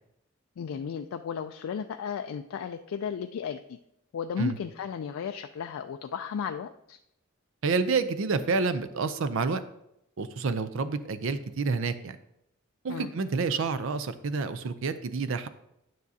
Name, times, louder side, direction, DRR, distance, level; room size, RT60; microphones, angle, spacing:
voice 1, 0.6-3.8 4.1-7.0 12.9-13.1, left 7 dB, 80° left, 7 dB, 0.3 m, -34 dB
voice 2, 7.6-9.6 10.2-12.2 12.8-15.5, right 4 dB, 65° right, 12 dB, 0.5 m, -28 dB
9.5 x 6.2 x 2.7 m, 0.82 s
head